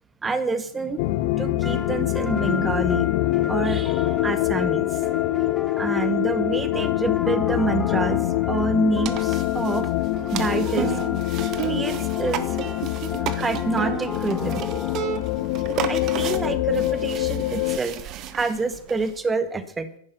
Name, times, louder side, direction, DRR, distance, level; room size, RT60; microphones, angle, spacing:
voice 1, 0.2-1.0 1.4-3.1 3.5-5.0 5.8-8.2 8.5-9.9 10.3-11.0 11.7-12.6 13.2-14.6 15.9-19.9, right 3 dB, 15° right, 11 dB, 1.7 m, -27 dB
sound 1, 1.0-17.8, left 17 dB, 45° left, 0.9 m, -25 dB
sound 2, 1.6-15.5, left 3 dB, 5° left, 1.2 m, -36 dB
sound 3, 9.0-19.2, right 9 dB, 35° right, 1.5 m, -33 dB
14.0 x 11.0 x 7.1 m, 0.72 s
figure-of-eight pair, 100°, 0 cm